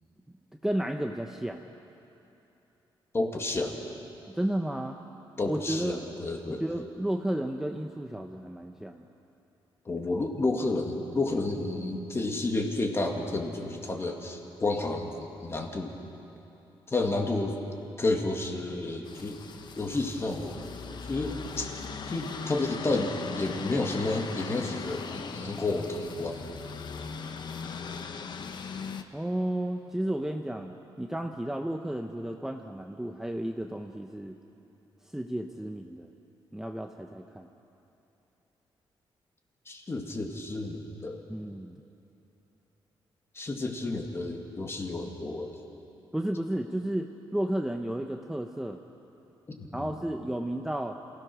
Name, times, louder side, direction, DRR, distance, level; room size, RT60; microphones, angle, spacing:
voice 1, 0.6-1.6 4.3-5.0 5.5-6.1 6.5-9.0 29.1-34.4 35.1-36.1 36.5-37.5 41.3-41.7 46.1-48.8 49.7-51.0, right 1 dB, 5° right, 3 dB, 0.8 m, -32 dB
voice 2, 3.1-3.8 5.4-6.6 9.9-15.9 16.9-17.6 18.0-19.4 19.8-26.5 39.7-41.2 43.3-45.5 49.5-49.9, left 2 dB, 25° left, 2 dB, 2.2 m, -31 dB
sound 1, 19.1-29.0, left 5 dB, 55° left, 1.1 m, -39 dB
27.5 x 16.5 x 6.2 m, 2.9 s
cardioid pair, 120°, 9 cm